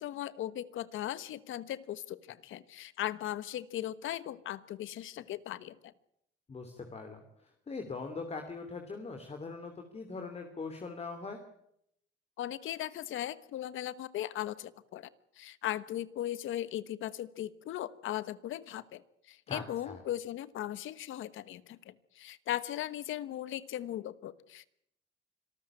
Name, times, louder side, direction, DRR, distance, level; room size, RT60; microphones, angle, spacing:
voice 1, 0.0-5.9 12.4-15.1 15.4-19.0 19.3-24.7, left 12 dB, 80° left, 16 dB, 1.3 m, -38 dB
voice 2, 6.5-11.4 19.5-20.0, left 4 dB, 30° left, 5 dB, 3.0 m, -41 dB
26.0 x 14.0 x 8.9 m, 0.74 s
cardioid pair, 110°, 20 cm